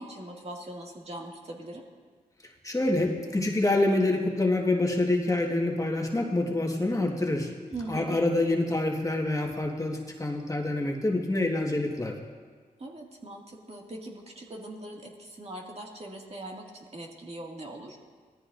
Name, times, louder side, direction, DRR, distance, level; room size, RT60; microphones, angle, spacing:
voice 1, 0.0-1.8 7.7-8.2 12.8-18.0, right 1 dB, 45° right, -1 dB, 2.2 m, -41 dB
voice 2, 2.6-7.5 7.9-12.2, left 2 dB, 20° left, 0 dB, 1.6 m, -26 dB
18.0 x 14.0 x 2.6 m, 1.5 s
cardioid pair, 50°, 15 cm